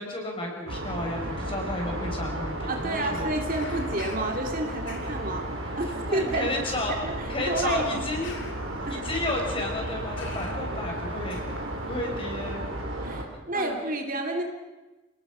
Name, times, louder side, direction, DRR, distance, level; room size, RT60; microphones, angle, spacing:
voice 1, 0.0-3.3 3.6-3.7 5.9-6.9 7.3-8.4 8.9-11.4 11.8-12.6 13.5-13.8, left 1 dB, 25° left, 0 dB, 5.6 m, -32 dB
sound 1, 0.7-13.2, right 1 dB, 70° right, 4.5 m, -34 dB
Bird vocalization bird call bird song, 2.7-12.5, left 3 dB, 60° left, 3.1 m, -47 dB
sound 2, 2.7-13.0, equal, 20° right, 4.7 m, -45 dB
voice 2, 2.7-5.5 5.8-6.5 6.9-7.1 7.5-8.1 8.8-9.0 13.0-14.4, right 2 dB, 40° right, 3 dB, 2.4 m, -30 dB
28.0 x 19.5 x 6.1 m, 1.1 s
head